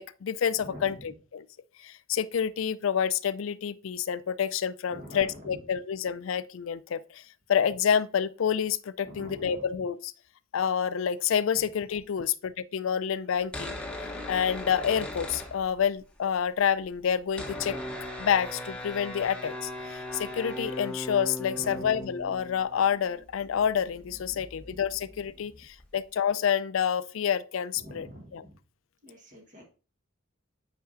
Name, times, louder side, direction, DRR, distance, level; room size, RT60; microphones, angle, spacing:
voice 1, 0.0-1.5 1.8-7.2 7.5-10.1 10.5-13.8 14.3-17.8 18.2-28.1 28.3-28.4, left 8 dB, 70° left, 0.4 m, -28 dB
voice 2, 0.6-1.1 4.9-5.6 9.0-9.7 17.5-17.9 21.6-22.0 24.3-24.8 27.8-28.6 29.0-29.6, equal, 40° right, 1.3 m, -46 dB
sound 1, 13.4-16.1 16.4-16.5 16.6-26.1, left 1 dB, 5° left, 0.9 m, -39 dB
8.0 x 5.1 x 2.5 m
head